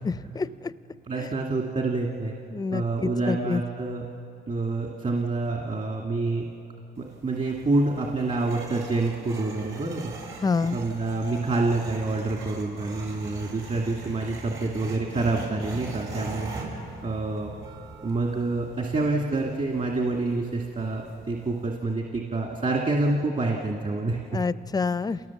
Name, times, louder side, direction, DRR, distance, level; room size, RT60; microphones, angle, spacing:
voice 1, 0.1-0.7 1.2-1.3 2.5-3.6 10.4-10.8 24.3-25.2, left 4 dB, 20° left, 16 dB, 0.5 m, -27 dB
voice 2, 1.1-2.3 2.7-4.0 4.5-6.4 7.0-10.4 10.7-17.5 18.0-24.2, right 3 dB, 40° right, 0 dB, 2.2 m, -27 dB
sound 1, 7.0-21.8, right 2 dB, 75° right, 4.9 m, -41 dB
28.5 x 18.0 x 7.2 m, 2.8 s
cardioid pair, 90°, 20 cm